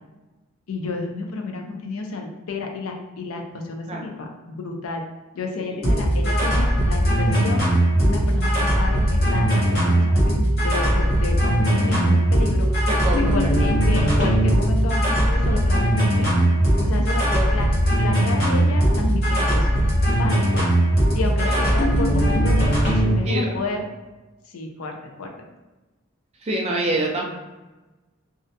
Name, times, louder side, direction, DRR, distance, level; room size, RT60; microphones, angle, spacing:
voice 1, 0.7-5.0 5.3-7.7 8.0-12.7 13.1-16.4 16.8-17.7 18.0-19.7 20.2-20.6 21.1-23.8 24.5-25.3, left 3 dB, 80° left, 3 dB, 0.4 m, -31 dB
sound 1, 5.8-23.2, right 1 dB, 45° left, 0.9 m, -19 dB
voice 2, 12.9-13.3 17.3-17.5 23.2-23.5 26.4-27.2, right 1 dB, 30° right, 0 dB, 0.3 m, -25 dB
2.4 x 2.1 x 2.6 m, 1.1 s
head